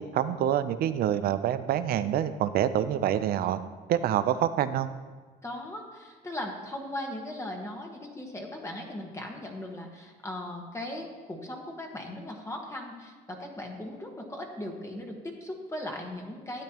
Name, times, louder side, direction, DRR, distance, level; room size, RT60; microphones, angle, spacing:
voice 1, 0.0-3.6 3.9-4.9, right 10 dB, 65° right, 12 dB, 0.5 m, -26 dB
voice 2, 5.4-16.6, left 1 dB, 15° left, 1 dB, 1.3 m, -38 dB
12.5 x 8.6 x 2.9 m, 1.4 s
cardioid pair, 110°, 17 cm